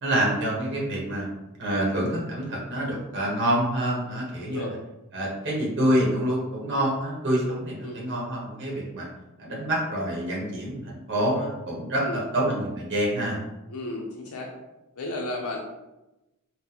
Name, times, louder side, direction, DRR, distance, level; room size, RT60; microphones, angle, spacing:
voice 1, 0.0-1.3 1.6-4.7 5.1-9.1 9.4-13.4, right 1 dB, 55° right, -4 dB, 0.9 m, -27 dB
voice 2, 4.4-4.7 7.4-7.5 7.8-8.2 11.9-12.2 13.7-14.5 15.0-15.6, left 2 dB, 80° left, 0 dB, 0.4 m, -34 dB
3.9 x 2.0 x 2.7 m, 0.98 s
head